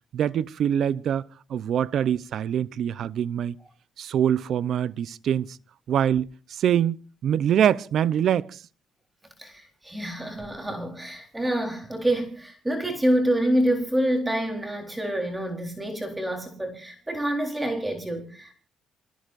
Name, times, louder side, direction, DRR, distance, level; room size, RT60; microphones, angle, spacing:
voice 1, 0.1-1.2 1.5-3.6 4.0-5.6 5.9-8.6, right 9 dB, 70° right, 0.7 m, -24 dB
voice 2, 9.4-18.5, right 1 dB, 10° right, 3.9 m, -27 dB
28.0 x 17.5 x 2.6 m
cardioid pair, 90°, 0 cm